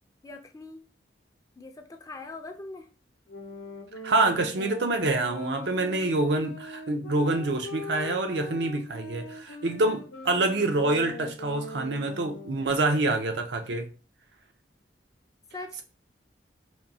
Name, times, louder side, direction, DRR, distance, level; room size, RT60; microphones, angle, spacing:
voice 1, 0.2-0.8 1.6-2.9 15.5-15.8, left 2 dB, 20° left, 0.4 m, -41 dB
sound 1, 3.3-12.9, equal, 75° left, 0.7 m, -41 dB
voice 2, 4.0-13.9, right 2 dB, 75° right, 0.6 m, -26 dB
4.4 x 2.6 x 2.7 m
head